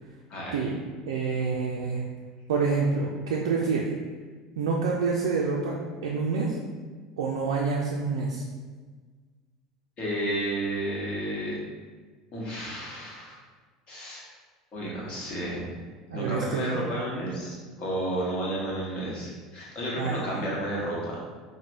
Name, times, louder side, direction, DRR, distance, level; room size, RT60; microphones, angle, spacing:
voice 1, 1.1-2.0 2.5-3.9 4.6-6.6 7.2-8.4 16.1-16.8 20.0-20.4, right 4 dB, 65° right, -2 dB, 0.4 m, -27 dB
voice 2, 10.0-11.6 12.3-13.4 13.9-14.3 14.7-15.6 16.1-21.2, right 1 dB, 40° left, -4 dB, 1.2 m, -32 dB
5.0 x 2.1 x 3.0 m, 1.4 s
figure-of-eight pair, 70°, 3 cm